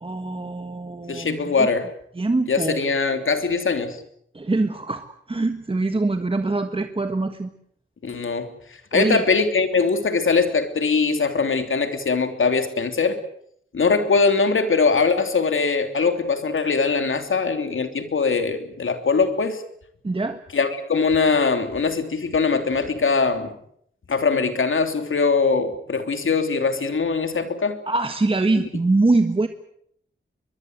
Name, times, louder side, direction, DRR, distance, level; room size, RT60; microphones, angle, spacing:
voice 1, 0.0-1.7 2.1-2.8 4.3-7.5 8.9-9.2 20.0-20.4 27.9-29.5, right 2 dB, 25° right, 7 dB, 1.5 m, -23 dB
voice 2, 1.1-1.9 2.5-4.0 8.0-8.5 8.9-13.2 13.7-19.6 20.5-23.5 24.1-27.8, left 4 dB, 75° left, 8 dB, 3.2 m, -21 dB
23.0 x 22.5 x 8.1 m, 0.70 s
wide cardioid pair, 100°, 21 cm